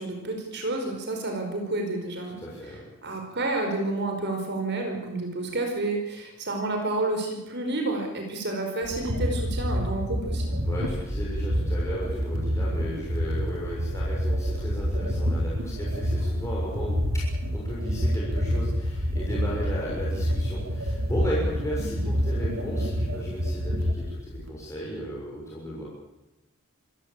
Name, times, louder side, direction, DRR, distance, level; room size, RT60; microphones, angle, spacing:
voice 1, 0.0-2.4 3.0-10.6, right 2 dB, 55° right, 3 dB, 5.0 m, -30 dB
voice 2, 2.4-2.8 10.6-17.2 17.5-24.2 24.5-25.8, equal, 15° left, -6 dB, 6.7 m, -35 dB
sound 1, 8.8-24.5, equal, 75° right, 3.8 m, -28 dB
25.5 x 16.0 x 8.9 m, 0.95 s
head